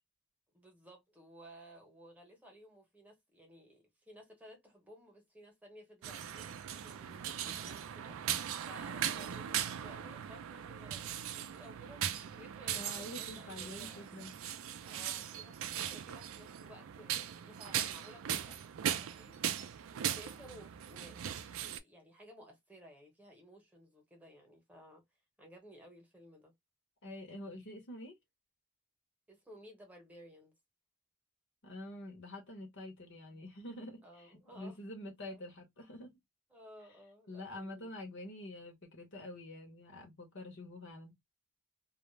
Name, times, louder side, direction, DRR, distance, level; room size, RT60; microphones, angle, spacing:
voice 1, 0.5-14.1 14.8-25.0 25.4-26.5 29.3-30.5 34.0-34.8 35.0-35.4 36.5-37.9, equal, 5° right, 1.0 m, -57 dB
sound 1, 6.0-21.8, right 9 dB, 65° right, 0.4 m, -39 dB
voice 2, 12.7-14.3 27.0-28.1 31.6-36.1 37.3-41.2, left 1 dB, 60° left, 0.9 m, -47 dB
2.4 x 2.1 x 3.1 m
head